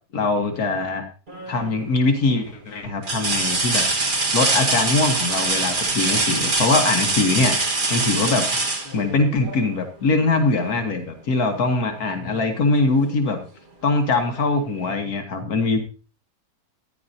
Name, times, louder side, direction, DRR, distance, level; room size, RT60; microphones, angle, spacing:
voice 1, 0.1-1.1 1.5-3.9 4.3-7.6 7.9-8.4 8.9-13.4 13.8-15.8, left 3 dB, 65° left, 5 dB, 1.7 m, -22 dB
sound 1, 1.3-1.8 2.3-2.4 3.0-9.7 11.5-11.6 12.1-13.1 14.4-14.5, right 3 dB, 30° right, 1.5 m, -23 dB
14.0 x 10.0 x 2.7 m, 0.35 s
omnidirectional pair, 1.7 m